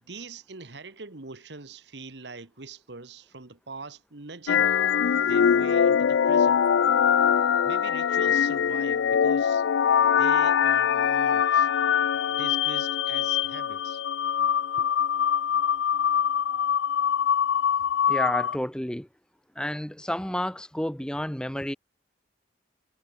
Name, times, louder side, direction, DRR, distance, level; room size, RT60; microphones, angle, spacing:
voice 1, 0.0-4.8 5.2-6.6 7.6-9.7 10.2-11.7 12.3-14.0, right 3 dB, 65° right, 1.5 m, -42 dB
sound 1, 4.5-18.6, left 8 dB, 80° left, 0.4 m, -23 dB
voice 2, 18.1-19.1 19.6-21.8, left 1 dB, 5° left, 0.6 m, -30 dB
head